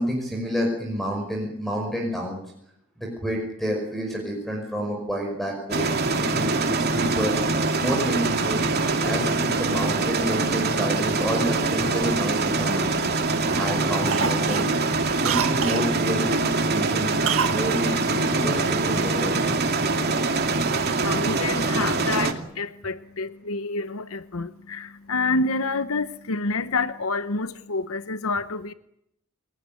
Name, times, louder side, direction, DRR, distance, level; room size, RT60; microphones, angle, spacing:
voice 1, 0.0-2.4 3.0-5.9 6.2-7.3 7.8-8.7 9.0-13.0 13.6-14.7 15.2-17.2 17.5-19.4, equal, ahead, 5.5 m, -29 dB
sound 1, 5.7-22.3, right 3 dB, 50° right, 2.7 m, -24 dB
Cough, 11.9-13.1 13.5-13.7 14.1-15.9 17.3-17.6 17.9-18.0, right 7 dB, 85° right, 1.8 m, -28 dB
voice 2, 21.0-28.7, left 3 dB, 80° left, 1.0 m, -28 dB
29.0 x 18.0 x 9.2 m
head